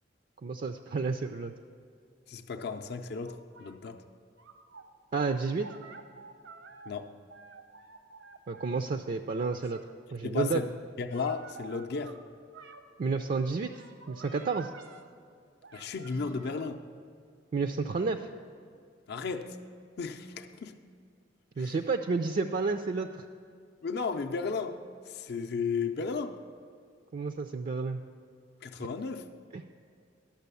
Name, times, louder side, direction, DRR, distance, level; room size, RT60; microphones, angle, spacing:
voice 1, 0.4-1.5 5.1-5.7 8.5-9.8 10.1-10.6 13.0-13.7 14.1-14.7 17.5-18.2 21.6-23.2 27.1-28.0 29.5-29.6, right 4 dB, 45° right, 7 dB, 0.4 m, -30 dB
voice 2, 2.3-4.0 6.9-7.1 10.2-10.7 11.0-12.2 15.7-16.9 19.1-19.6 20.0-20.8 21.6-21.8 23.8-26.4 28.6-29.3, left 4 dB, 60° left, 5 dB, 0.5 m, -34 dB
sound 1, 3.1-3.7 4.4-4.8 5.6-6.9 7.3-8.8 9.5-9.8 11.1-12.1 12.5-12.8 13.3-15.0 15.6-16.7, right 4 dB, 85° right, 0.9 m, -51 dB
11.5 x 6.5 x 6.9 m, 2.2 s
head